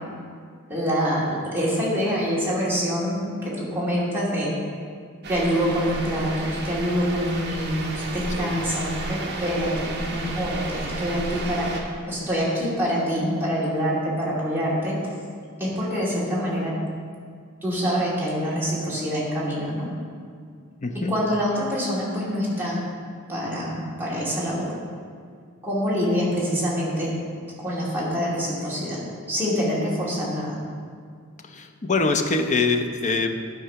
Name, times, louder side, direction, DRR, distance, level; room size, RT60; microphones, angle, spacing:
voice 1, 0.7-4.5 5.3-11.7 12.1-15.0 15.6-16.7 17.6-19.9 21.1-22.8 23.3-24.8 25.6-27.1 27.6-29.0 29.3-30.6, equal, 10° right, -8 dB, 2.6 m, -25 dB
sound 1, 5.2-11.8, right 2 dB, 50° right, 1.2 m, -32 dB
voice 2, 20.8-21.1 31.4-33.3, left 3 dB, 35° left, 5 dB, 0.6 m, -24 dB
12.0 x 4.7 x 5.8 m, 2.1 s
head